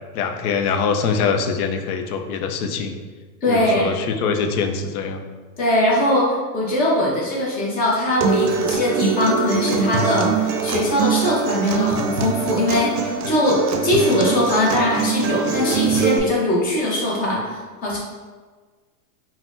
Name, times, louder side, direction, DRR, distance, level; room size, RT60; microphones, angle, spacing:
voice 1, 0.1-3.0 3.5-5.2, left 5 dB, 80° left, 7 dB, 0.5 m, -23 dB
voice 2, 3.4-3.9 5.6-18.0, left 1 dB, 20° left, -3 dB, 0.5 m, -21 dB
Acoustic guitar, 8.2-16.2, right 5 dB, 75° right, 0.5 m, -23 dB
3.8 x 2.1 x 2.4 m, 1.4 s
supercardioid pair, 145°, 45 cm